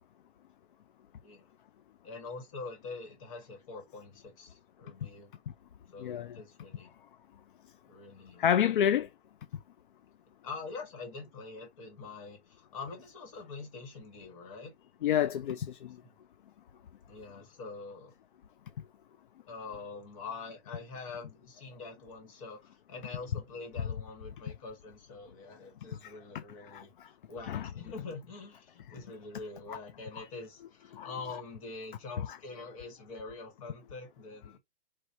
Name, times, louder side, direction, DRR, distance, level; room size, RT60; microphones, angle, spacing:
voice 1, 2.0-5.3 5.9-6.9 7.9-8.9 10.4-14.7 16.0-16.2 17.1-18.1 19.5-34.6, left 4 dB, 30° left, 1.8 m, -45 dB
voice 2, 6.0-6.4 8.4-9.1 15.0-16.0 26.0-26.8 27.5-27.7 29.7-29.8 30.9-31.1, left 9 dB, 55° left, 0.4 m, -29 dB
4.5 x 2.9 x 2.8 m
hypercardioid pair, 170°, 33 cm